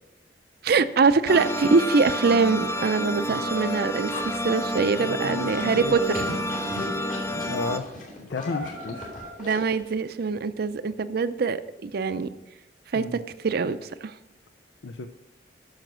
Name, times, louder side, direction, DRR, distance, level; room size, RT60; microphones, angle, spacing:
voice 1, 0.6-6.2 9.4-12.3 12.9-14.1, right 4 dB, 60° right, 13 dB, 0.5 m, -24 dB
sound 1, 1.3-7.8, equal, 15° left, 0.4 m, -29 dB
Livestock farm animals working animals, 4.1-9.9, left 1 dB, 50° left, 3.0 m, -38 dB
voice 2, 5.0-5.9 7.5-7.9 8.2-9.1 12.9-13.2 14.8-15.1, left 4 dB, 85° left, 7 dB, 0.5 m, -33 dB
9.1 x 6.4 x 6.1 m, 0.99 s
head